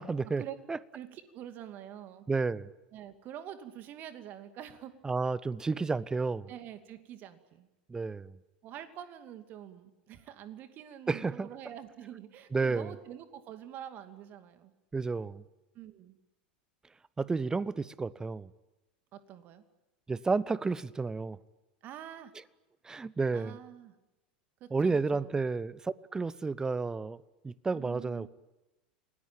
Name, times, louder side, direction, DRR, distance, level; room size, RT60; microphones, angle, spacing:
voice 1, 0.0-0.4 0.7-0.8 2.3-2.7 5.0-6.5 7.9-8.4 11.1-11.5 12.5-12.9 14.9-15.4 17.2-18.5 20.1-21.4 22.8-23.6 24.7-27.2 27.4-28.3, right 4 dB, 15° right, 0.8 m, -31 dB
voice 2, 0.9-2.3 2.9-4.9 6.5-7.7 8.6-14.7 15.7-16.2 19.1-19.6 21.8-22.3 23.3-23.9 24.6-25.4 27.7-28.3, right 10 dB, 40° right, 2.5 m, -46 dB
29.0 x 19.5 x 9.0 m
figure-of-eight pair, 80°, 5 cm